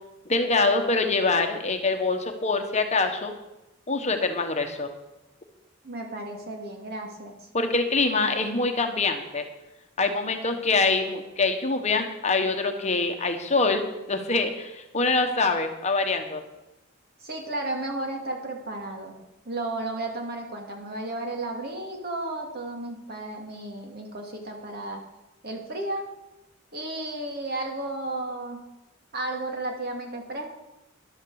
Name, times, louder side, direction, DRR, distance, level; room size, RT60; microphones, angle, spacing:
voice 1, 0.3-3.3 3.9-4.9 7.5-9.4 10.0-16.4, left 3 dB, 35° left, 5 dB, 1.2 m, -24 dB
voice 2, 5.8-7.3 17.2-19.1 19.5-25.0 25.4-26.1 26.7-28.6 29.1-30.6, right 2 dB, 55° right, 2 dB, 2.3 m, -33 dB
13.0 x 11.5 x 4.9 m, 0.93 s
head